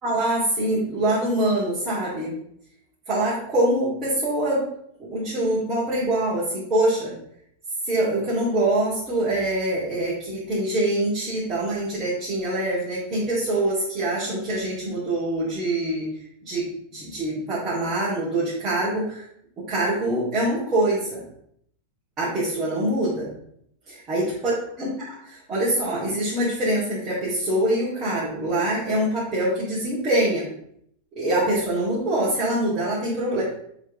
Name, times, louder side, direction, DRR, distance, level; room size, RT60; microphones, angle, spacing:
voice 1, 0.0-2.3 3.1-4.7 5.0-7.1 7.8-16.1 16.4-16.6 16.9-19.2 19.7-21.2 22.2-23.3 23.9-30.4 31.2-33.4, right 1 dB, 25° right, -10 dB, 2.7 m, -24 dB
7.4 x 4.1 x 3.7 m, 0.70 s
figure-of-eight pair, 90°, 0 cm